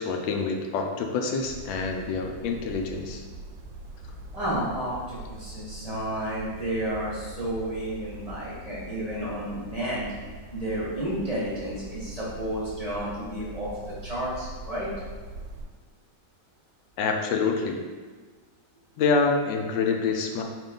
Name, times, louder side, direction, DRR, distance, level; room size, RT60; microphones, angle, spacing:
voice 1, 0.0-3.2 17.0-17.8 19.0-20.4, left 4 dB, 80° left, 3 dB, 1.3 m, -26 dB
sound 1, 1.4-15.7, right 1 dB, 75° right, 1.2 m, -42 dB
voice 2, 4.3-10.1 10.5-13.7 14.0-14.9, right 1 dB, 30° right, -9 dB, 0.8 m, -31 dB
4.3 x 2.9 x 3.8 m, 1.4 s
omnidirectional pair, 2.0 m